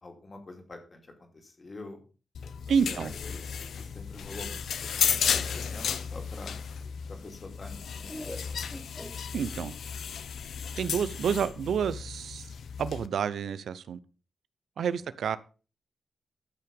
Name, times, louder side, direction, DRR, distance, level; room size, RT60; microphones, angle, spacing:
voice 1, 0.0-2.0 2.9-3.4 3.8-6.6 7.1-8.6 15.0-15.1, left 2 dB, 30° left, 2.5 m, -46 dB
sound 1, 2.3-13.1, left 7 dB, 75° left, 0.8 m, -34 dB
voice 2, 2.7-3.1 9.3-9.8 10.8-12.5 12.8-14.0 14.8-15.4, right 7 dB, 75° right, 0.6 m, -29 dB
Laughter, 6.1-9.8, equal, 5° left, 0.8 m, -46 dB
13.0 x 5.8 x 5.2 m
wide cardioid pair, 175°, 0 cm